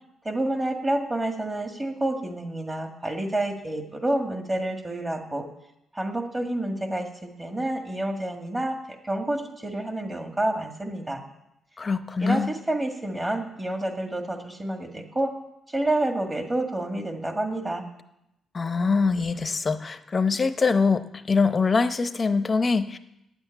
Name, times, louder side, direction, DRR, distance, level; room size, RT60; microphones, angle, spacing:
voice 1, 0.3-5.4 5.9-8.8 9.0-11.2 12.2-15.3 15.7-17.8, right 1 dB, 20° right, 5 dB, 1.9 m, -28 dB
voice 2, 11.8-12.5 18.5-23.0, left 4 dB, 30° left, 12 dB, 0.7 m, -23 dB
9.1 x 8.0 x 9.1 m, 0.86 s
cardioid pair, 90°, 0 cm